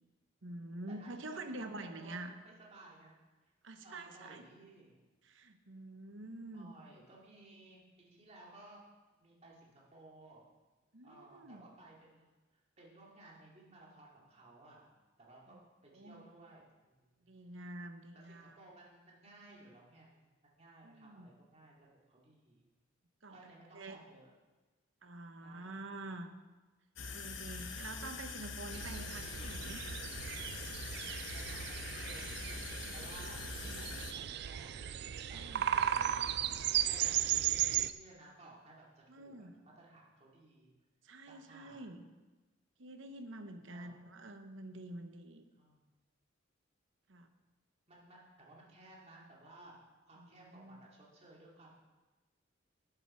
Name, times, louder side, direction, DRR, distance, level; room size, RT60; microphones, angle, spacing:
voice 1, 0.4-2.3 3.6-4.5 5.2-6.7 10.9-11.7 15.5-15.6 15.9-16.3 17.2-18.6 20.8-21.3 23.2-23.4 23.7-24.0 25.0-26.3 27.1-29.8 33.2-33.3 33.6-33.9 35.3-35.7 39.1-39.5 41.0-42.1 42.8-45.5 47.1-47.3 50.2-50.8, right 2 dB, 75° right, 7 dB, 1.0 m, -47 dB
voice 2, 1.0-3.5 3.8-5.0 6.5-8.8 9.2-10.4 11.0-12.3 12.5-14.9 15.2-15.6 15.8-17.3 18.1-22.6 23.3-24.3 25.4-25.8 31.3-35.0 35.3-40.7 41.3-41.8 43.7-44.2 45.6-45.8 47.9-49.8 50.1-51.7, right 2 dB, 35° right, -4 dB, 2.6 m, -58 dB
sound 1, 27.0-34.1, left 4 dB, 75° left, 1.0 m, -44 dB
sound 2, 28.7-37.9, right 11 dB, 55° right, 0.4 m, -36 dB
11.5 x 8.8 x 4.4 m, 1.2 s
head